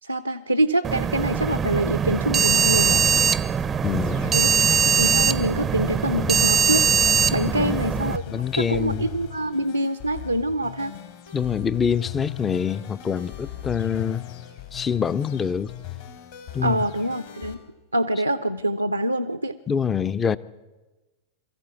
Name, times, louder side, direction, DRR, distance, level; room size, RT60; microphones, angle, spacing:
voice 1, 0.0-3.0 4.3-6.9 7.3-10.9 16.6-17.6 17.9-19.6, right 1 dB, 85° right, 0.6 m, -25 dB
sound 1, 0.8-8.2, right 6 dB, 20° right, 0.6 m, -21 dB
sound 2, 3.8-17.5, left 12 dB, 55° left, 3.2 m, -39 dB
voice 2, 3.8-4.3 7.5-7.8 8.3-9.1 11.3-14.2 14.7-15.7 16.5-16.8 19.7-20.4, left 7 dB, 20° left, 0.6 m, -25 dB
23.0 x 14.5 x 8.4 m
figure-of-eight pair, 90°, 0 cm